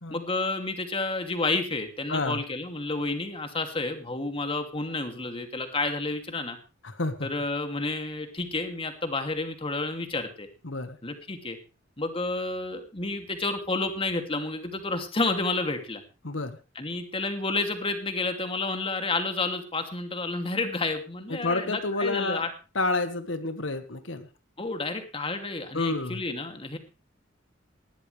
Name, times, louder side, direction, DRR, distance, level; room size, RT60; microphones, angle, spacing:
voice 1, 0.1-6.6 7.2-10.5 11.0-11.6 12.0-16.0 16.7-22.5 24.6-26.8, left 3 dB, 30° left, 6 dB, 2.7 m, -30 dB
voice 2, 2.1-2.4 6.8-7.3 10.6-11.0 16.2-16.6 21.3-22.4 22.7-24.3 25.7-26.2, left 2 dB, 80° left, 9 dB, 1.6 m, -29 dB
19.5 x 13.5 x 3.4 m, 0.33 s
head